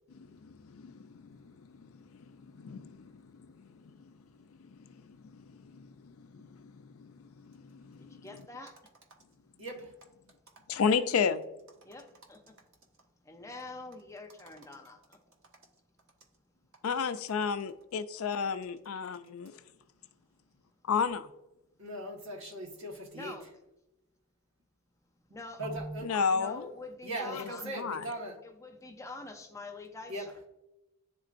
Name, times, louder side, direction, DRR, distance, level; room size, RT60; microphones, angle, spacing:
voice 1, 0.2-4.1 4.7-8.3 10.7-11.4 16.8-19.6 20.9-21.3 26.0-26.7 27.3-28.1, left 6 dB, 75° left, 11 dB, 0.4 m, -34 dB
voice 2, 8.0-8.8 11.8-12.6 13.3-15.2 23.1-23.5 25.3-25.6 26.3-27.6 28.4-30.4, left 3 dB, 15° left, 5 dB, 0.6 m, -46 dB
voice 3, 9.6-9.9 21.8-23.4 25.6-26.1 27.0-28.4 30.1-30.3, right 1 dB, 65° right, 1 dB, 1.4 m, -39 dB
10.5 x 3.7 x 2.5 m, 0.94 s
head